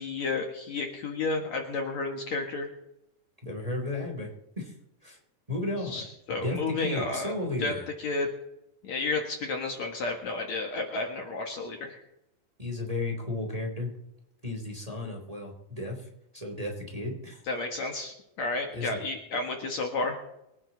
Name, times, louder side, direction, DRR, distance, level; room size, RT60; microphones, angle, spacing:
voice 1, 0.0-2.7 5.9-7.3 7.6-7.7 8.0-8.3 8.8-12.0 17.5-20.2, left 3 dB, 55° left, 2 dB, 2.6 m, -31 dB
voice 2, 3.4-4.3 4.6-4.7 5.0-5.2 5.5-6.0 6.3-7.9 12.6-13.9 14.4-17.4 18.7-19.0, left 2 dB, 10° right, 1 dB, 2.9 m, -34 dB
24.0 x 10.0 x 4.0 m, 0.86 s
omnidirectional pair, 4.1 m